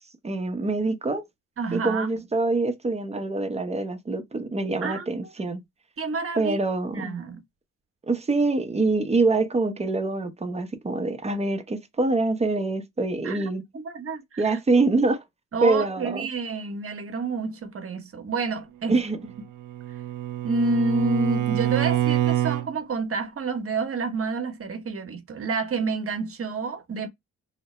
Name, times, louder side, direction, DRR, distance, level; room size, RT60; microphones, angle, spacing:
voice 1, 0.2-1.2 1.7-5.6 6.4-7.1 8.1-13.6 14.4-15.2 15.6-16.3 18.9-19.2, right 3 dB, 20° right, 0.7 m, -25 dB
voice 2, 1.6-2.1 4.8-5.1 6.0-6.6 6.9-7.4 13.2-14.6 15.5-19.0 20.4-27.1, right 3 dB, 45° right, 0.9 m, -29 dB
Bowed string instrument, 19.3-22.7, right 13 dB, 75° right, 0.5 m, -26 dB
2.8 x 2.1 x 4.1 m
cardioid pair, 95°, 31 cm